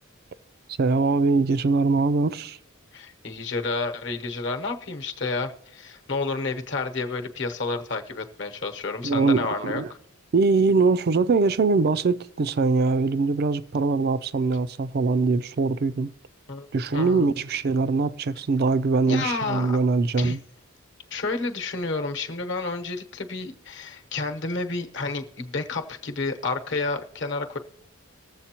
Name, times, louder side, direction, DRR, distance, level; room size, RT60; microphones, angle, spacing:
voice 1, 0.8-2.6 9.0-9.9 10.3-16.1 16.7-20.4, right 4 dB, 45° right, 0.4 m, -22 dB
voice 2, 2.9-9.8 16.5-17.3 19.1-19.8 20.2-20.4 21.1-27.6, left 3 dB, 55° left, 1.0 m, -30 dB
20.5 x 7.5 x 2.9 m
head